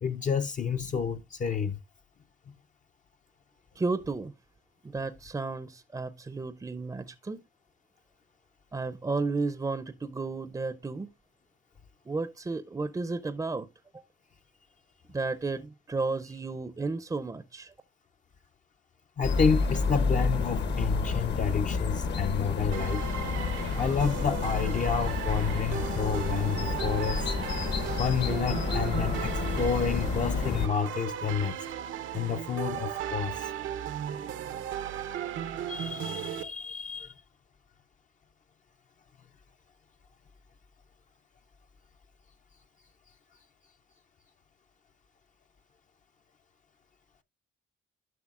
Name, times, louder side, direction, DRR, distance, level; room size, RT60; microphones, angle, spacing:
voice 1, 0.0-1.8 19.2-23.0 23.7-27.2 28.0-31.6 32.1-33.5 35.7-37.1, left 6 dB, 40° left, 0.5 m, -30 dB
voice 2, 3.8-4.3 4.8-7.4 8.7-11.1 12.1-13.7 15.1-17.7, right 3 dB, 20° right, 0.5 m, -33 dB
sound 1, 19.2-30.7, left 4 dB, 60° left, 1.1 m, -30 dB
sound 2, 22.7-36.4, right 9 dB, 80° right, 0.8 m, -36 dB
12.0 x 5.7 x 2.4 m
cardioid pair, 90°, 20 cm